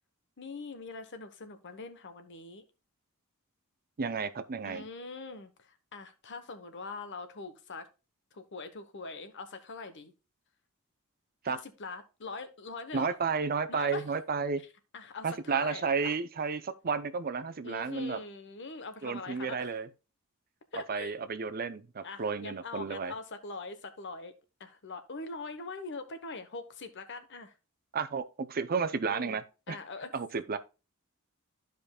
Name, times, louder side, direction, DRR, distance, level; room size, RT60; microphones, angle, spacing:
voice 1, 0.4-2.6 4.6-7.9 8.3-10.1 11.4-13.1 13.7-14.0 14.9-16.2 17.6-19.7 20.7-21.1 22.0-24.3 24.6-27.5 29.0-29.4 29.7-30.1, left 3 dB, 55° left, 1.1 m, -42 dB
voice 2, 4.0-4.8 11.4-11.6 12.9-14.6 15.2-18.2 19.0-19.9 20.7-23.1 27.9-29.8 30.1-30.6, right 5 dB, 45° right, 0.6 m, -32 dB
13.5 x 5.2 x 2.3 m
head